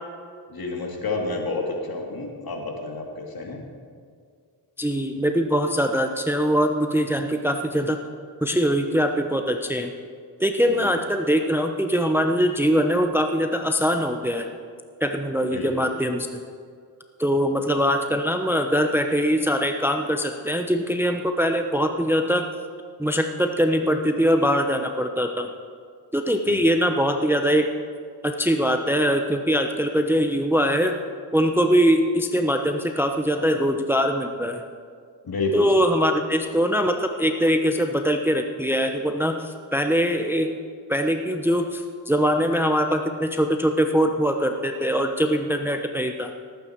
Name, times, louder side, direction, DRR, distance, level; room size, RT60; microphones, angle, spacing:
voice 1, 0.5-3.6 10.7-10.9 15.4-15.8 26.5-26.7 35.2-35.8, left 3 dB, 50° left, 1 dB, 2.7 m, -30 dB
voice 2, 4.8-8.0 8.4-9.9 10.4-14.5 15.0-16.3 17.2-22.5 23.0-25.5 26.1-27.7 28.2-31.0 31.3-34.6 35.5-40.6 40.9-46.3, equal, 5° right, 5 dB, 0.9 m, -22 dB
18.5 x 8.8 x 4.6 m, 2.1 s
supercardioid pair, 60°, 46 cm